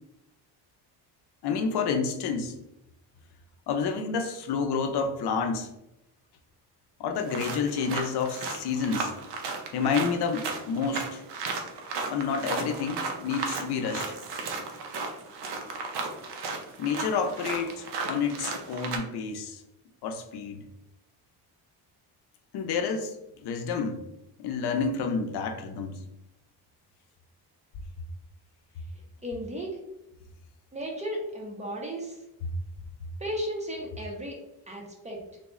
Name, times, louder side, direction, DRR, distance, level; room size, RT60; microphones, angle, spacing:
voice 1, 1.4-2.5 3.7-5.7 7.0-9.1 9.7-11.2 12.1-14.2 16.8-19.6 20.0-20.6 22.5-23.1 23.4-24.0 24.4-26.0 32.4-32.5, left 5 dB, 75° left, 5 dB, 0.6 m, -29 dB
sound 1, 7.2-19.0, right 4 dB, 90° right, 0.7 m, -35 dB
voice 2, 29.2-29.8 30.7-32.2 33.2-34.4 34.7-35.2, equal, 20° right, -2 dB, 0.5 m, -34 dB
3.5 x 2.0 x 3.6 m, 0.86 s
cardioid pair, 180°, 40 cm